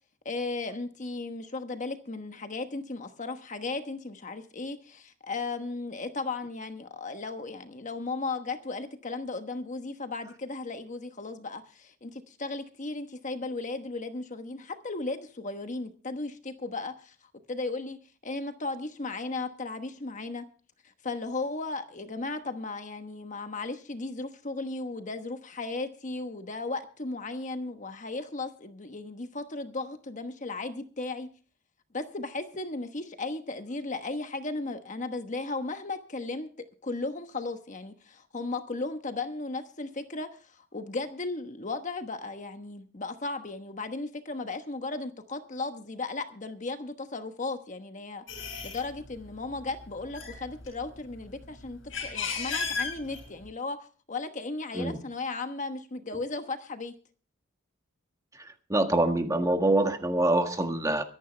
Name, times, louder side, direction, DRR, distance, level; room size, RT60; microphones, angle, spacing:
voice 1, 0.2-17.1 17.5-18.0 18.2-20.4 21.0-31.3 31.9-36.5 36.8-56.9, left 3 dB, 40° left, 1.2 m, -36 dB
sound 1, 48.3-48.8 49.5-49.7 50.0-51.1 51.6-53.5, left 5 dB, 70° left, 6.7 m, -34 dB
voice 2, 58.7-61.0, right 1 dB, 15° right, 1.6 m, -25 dB
24.0 x 10.5 x 3.3 m
head